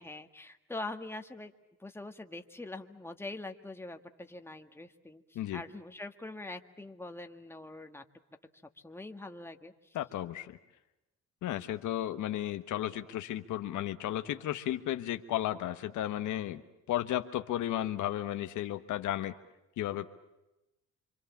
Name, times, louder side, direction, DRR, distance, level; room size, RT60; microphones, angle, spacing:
voice 1, 0.0-1.5 1.8-8.0 8.8-9.7, left 2 dB, 10° left, 6 dB, 1.7 m, -43 dB
voice 2, 9.9-10.6 11.4-16.6 16.9-19.4 19.8-20.1, left 12 dB, 80° left, 9 dB, 1.3 m, -34 dB
27.0 x 25.5 x 7.3 m, 0.97 s
cardioid pair, 90°, 30 cm